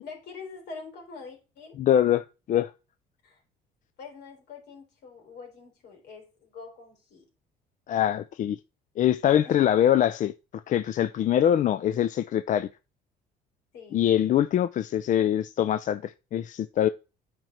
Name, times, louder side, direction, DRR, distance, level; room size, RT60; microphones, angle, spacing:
voice 1, 0.0-1.8 3.2-3.4 4.0-7.3 9.4-9.6 13.7-14.1, left 4 dB, 75° left, 3.9 m, -44 dB
voice 2, 1.8-2.7 7.9-8.6 9.0-10.3 10.7-12.7 13.9-16.9, left 10 dB, 50° left, 0.4 m, -23 dB
9.1 x 5.2 x 4.4 m
cardioid pair, 110°, 17 cm